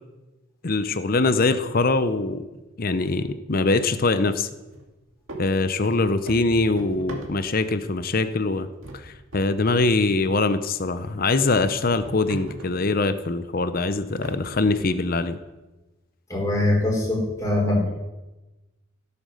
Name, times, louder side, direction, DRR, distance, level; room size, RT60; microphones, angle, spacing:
voice 1, 0.6-2.4 2.8-4.5 5.4-8.7 8.9-15.4, left 3 dB, 45° left, 11 dB, 0.7 m, -23 dB
sound 1, 4.7-4.9 5.3-7.8 8.2-8.5 8.8-9.9 10.2-10.3 10.8-10.9 11.5-12.9 13.6-13.7 14.2-15.3, right 1 dB, 70° right, 2.5 m, -40 dB
voice 2, 16.3-17.9, left 2 dB, 15° left, -3 dB, 3.9 m, -22 dB
16.0 x 8.7 x 6.4 m, 1.1 s
head